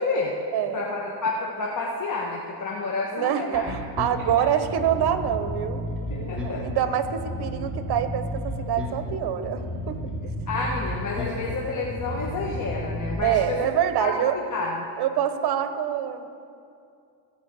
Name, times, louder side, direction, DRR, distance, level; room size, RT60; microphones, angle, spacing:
voice 1, 0.0-0.3 0.7-3.8 6.1-6.6 10.5-13.6 14.0-14.1 14.5-14.8, left 3 dB, 40° left, -3 dB, 1.4 m, -29 dB
voice 2, 0.5-0.9 3.1-5.9 6.2-10.3 13.2-14.4 15.0-16.3, right 9 dB, 55° right, 10 dB, 1.0 m, -26 dB
Bass guitar, 3.5-13.1, left 1 dB, ahead, 3.6 m, -32 dB
15.0 x 5.5 x 7.7 m, 2.5 s
cardioid pair, 105°, 47 cm